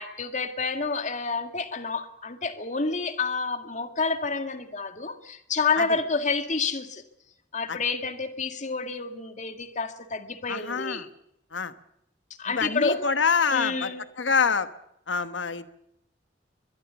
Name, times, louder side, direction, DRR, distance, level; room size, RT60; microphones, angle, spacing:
voice 1, 0.0-7.0 7.5-11.1 12.4-13.0 13.5-14.0, left 4 dB, 40° left, 8 dB, 2.0 m, -29 dB
voice 2, 10.5-11.1 11.5-11.7 12.6-13.9 14.2-14.7 15.1-15.7, left 5 dB, 85° left, 12 dB, 1.2 m, -26 dB
23.0 x 22.5 x 7.1 m, 0.82 s
head